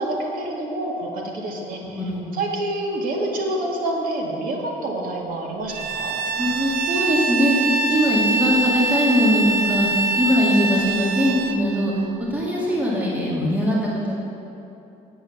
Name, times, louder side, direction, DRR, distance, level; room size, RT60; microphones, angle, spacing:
voice 1, 0.0-2.0 2.4-6.1, right 1 dB, 55° right, -1 dB, 2.1 m, -27 dB
voice 2, 1.9-2.4 6.4-12.0 12.3-14.1, equal, 10° right, -6 dB, 2.2 m, -21 dB
Bowed string instrument, 5.7-11.6, right 3 dB, 75° right, 0.7 m, -24 dB
8.9 x 7.7 x 7.1 m, 2.9 s
cardioid pair, 110°, 17 cm